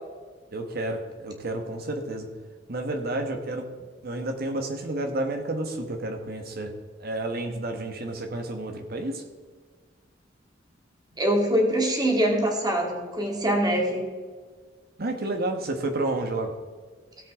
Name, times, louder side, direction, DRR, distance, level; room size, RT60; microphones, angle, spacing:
voice 1, 0.5-2.3 2.7-3.7 4.0-6.7 7.0-9.2 15.0-16.5, right 2 dB, 55° right, 5 dB, 1.3 m, -30 dB
voice 2, 11.2-14.1, right 1 dB, 20° right, 1 dB, 2.2 m, -24 dB
17.0 x 8.0 x 3.7 m, 1.5 s
head